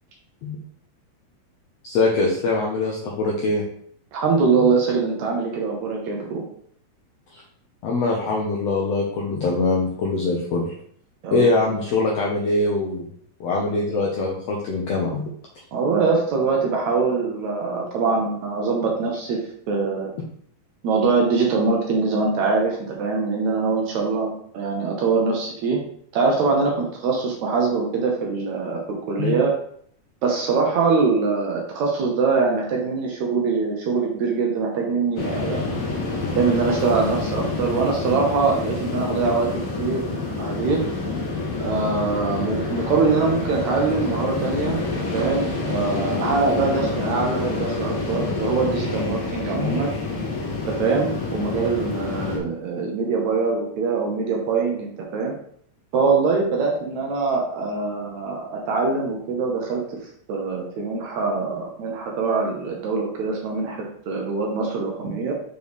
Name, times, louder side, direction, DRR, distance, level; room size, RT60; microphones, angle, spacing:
voice 1, 1.8-3.6 4.5-4.7 7.3-7.4 7.8-10.7 11.3-13.0 13.4-15.2 29.2-29.3 49.6-49.8 65.0-65.1, left 3 dB, 75° left, -2 dB, 1.5 m, -23 dB
voice 2, 4.1-6.4 11.2-11.5 15.7-19.4 19.7-20.1 20.8-24.3 24.5-25.8 26.1-28.8 29.1-29.5 30.2-35.8 36.4-40.0 40.4-40.8 41.6-44.8 45.1-49.9 50.7-55.3 55.9-59.8 60.3-65.3, right 4 dB, 70° right, 0 dB, 2.0 m, -23 dB
sound 1, 35.2-52.4, left 3 dB, 50° left, 1.9 m, -28 dB
6.4 x 4.5 x 3.5 m, 0.64 s
omnidirectional pair, 4.0 m